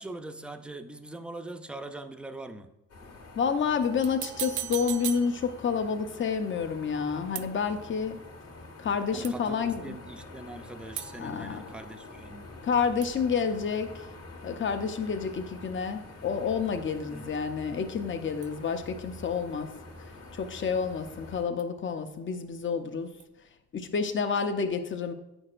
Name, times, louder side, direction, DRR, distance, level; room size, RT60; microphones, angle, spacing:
voice 1, 0.0-2.7 9.1-12.5 17.0-17.3, right 2 dB, 5° right, 8 dB, 0.5 m, -42 dB
sound 1, 2.9-21.4, left 2 dB, 55° left, 1.6 m, -46 dB
voice 2, 3.3-8.2 8.8-10.0 11.2-11.6 12.6-13.9 14.4-19.7 20.3-23.1 23.7-25.1, left 6 dB, 40° left, 8 dB, 0.7 m, -29 dB
sound 2, 3.8-5.9 7.4-8.0 9.2-9.7 11.0-12.7 13.0-14.2 18.4-19.2 21.6-22.2 23.2-23.3, right 12 dB, 80° right, 0.5 m, -41 dB
8.6 x 6.3 x 2.5 m, 0.94 s
cardioid pair, 90°, 30 cm